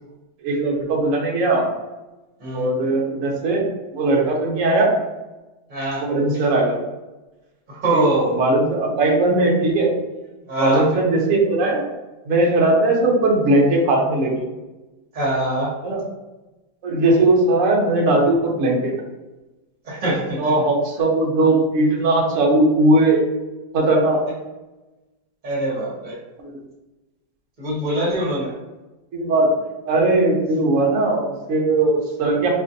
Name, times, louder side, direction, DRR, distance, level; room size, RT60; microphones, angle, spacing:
voice 1, 0.4-1.7 2.5-3.6 3.9-5.0 6.0-6.8 7.9-8.0 8.4-9.9 10.6-11.9 12.3-14.4 15.8-16.0 16.8-18.9 20.4-23.3 23.7-24.2 26.4-26.6 29.1-29.5 29.9-32.5, right 2 dB, 70° right, -1 dB, 0.7 m, -18 dB
voice 2, 5.7-6.1 7.7-8.4 10.5-10.9 15.1-15.7 19.8-20.5 25.4-26.2 27.6-28.5, right 1 dB, 30° right, -6 dB, 0.9 m, -23 dB
2.9 x 2.5 x 2.5 m, 1.1 s
omnidirectional pair, 2.0 m